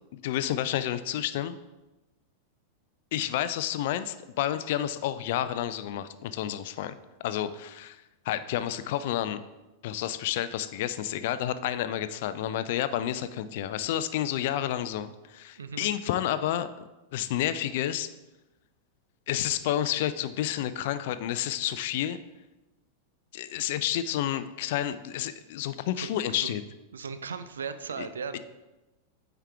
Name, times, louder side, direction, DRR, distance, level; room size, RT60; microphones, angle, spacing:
voice 1, 0.1-1.6 3.1-7.0 7.2-8.0 8.3-9.4 9.8-18.1 19.3-22.2 23.3-26.6 28.0-28.1 28.3-28.4, left 11 dB, 50° left, 13 dB, 0.4 m, -30 dB
voice 2, 15.6-15.9 26.0-26.6 26.9-28.4, right 5 dB, 70° right, 11 dB, 0.4 m, -37 dB
9.0 x 4.7 x 3.4 m, 1.0 s
figure-of-eight pair, 90°, 0 cm